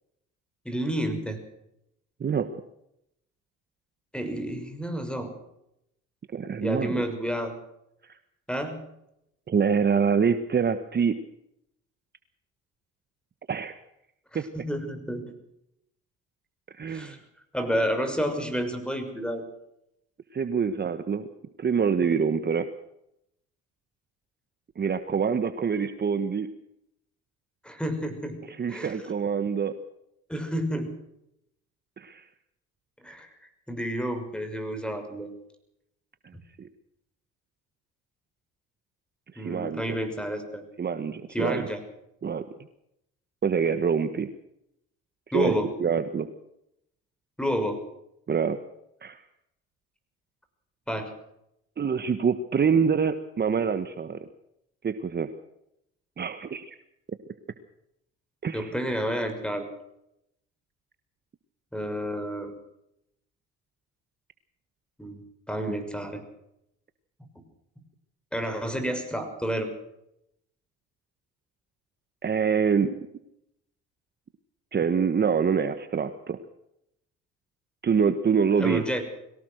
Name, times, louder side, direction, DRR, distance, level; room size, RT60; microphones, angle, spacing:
voice 1, 0.6-1.4 4.1-5.3 6.6-7.5 8.5-8.8 14.5-15.2 16.8-17.2 17.5-19.4 27.6-28.4 28.7-29.0 30.3-30.9 33.0-33.3 33.7-35.3 39.4-40.6 41.3-41.8 45.3-45.7 47.4-47.8 50.9-51.1 58.5-59.7 61.7-62.6 65.0-65.2 65.5-66.2 67.2-67.3 68.3-69.7 78.6-79.0, equal, 5° left, 7 dB, 6.1 m, -30 dB
voice 2, 6.3-7.0 8.0-8.2 9.5-11.2 13.5-13.7 14.3-14.4 16.7-17.1 20.3-21.2 21.6-22.7 24.8-26.5 28.5-29.7 32.0-32.2 36.6-36.7 39.3-39.8 40.8-41.7 42.2-42.4 43.4-44.3 45.3-45.5 45.8-46.3 48.3-48.6 49.0-49.2 51.8-54.2 54.8-55.3 56.2-56.8 58.4-58.7 72.2-72.9 74.7-76.4 77.8-78.8, right 6 dB, 35° right, 10 dB, 1.5 m, -25 dB
22.5 x 17.5 x 6.5 m, 0.80 s
supercardioid pair, 85°, 31 cm